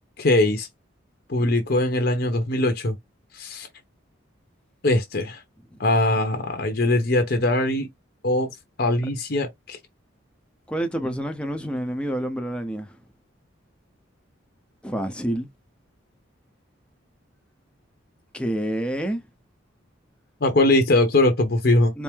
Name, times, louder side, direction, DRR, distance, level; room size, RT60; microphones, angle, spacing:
voice 1, 0.2-0.7 1.3-3.0 3.3-3.7 4.8-5.4 5.8-7.9 8.2-8.5 8.8-9.8 20.4-21.9, left 1 dB, 50° left, 0.8 m, -21 dB
voice 2, 10.7-12.9 14.8-15.5 18.3-19.2 21.9-22.0, right 1 dB, 5° left, 0.7 m, -28 dB
4.5 x 2.0 x 3.5 m
head